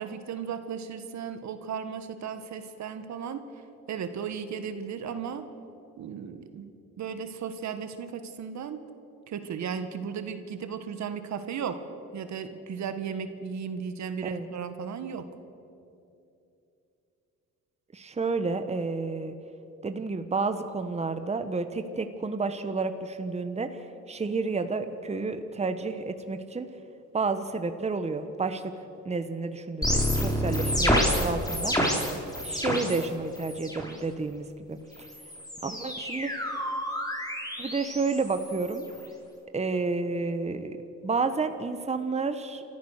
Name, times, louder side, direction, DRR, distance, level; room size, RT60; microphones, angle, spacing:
voice 1, 0.0-3.5 3.9-5.5 6.0-6.7 7.0-8.8 9.3-11.8 12.1-15.3, right 7 dB, 65° right, 9 dB, 1.5 m, -35 dB
voice 2, 17.9-19.3 19.8-26.7 27.1-28.7 29.0-31.7 32.4-34.8 35.6-36.3 37.6-38.9 39.5-40.8 41.0-42.6, right 4 dB, 20° right, 9 dB, 1.2 m, -30 dB
sound 1, 29.8-33.0 33.3-33.9 34.9-39.1, equal, 10° left, 4.1 m, -29 dB
28.0 x 14.0 x 6.5 m, 2.7 s
cardioid pair, 90°, 30 cm